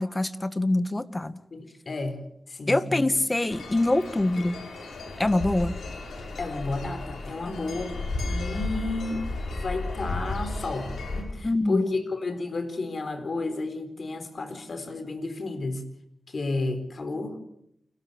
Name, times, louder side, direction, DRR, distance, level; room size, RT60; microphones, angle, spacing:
voice 1, 0.0-1.4 2.7-4.6 5.2-5.8 11.4-11.8, left 2 dB, 30° left, 13 dB, 1.7 m, -24 dB
voice 2, 1.5-2.2 2.5-3.1 6.4-8.0 8.2-15.8 16.3-17.4, left 3 dB, 65° left, 9 dB, 4.3 m, -32 dB
sound 1, 3.5-11.2, left 2 dB, 90° left, 6.0 m, -34 dB
29.5 x 13.0 x 8.1 m, 0.72 s
cardioid pair, 40°, 0 cm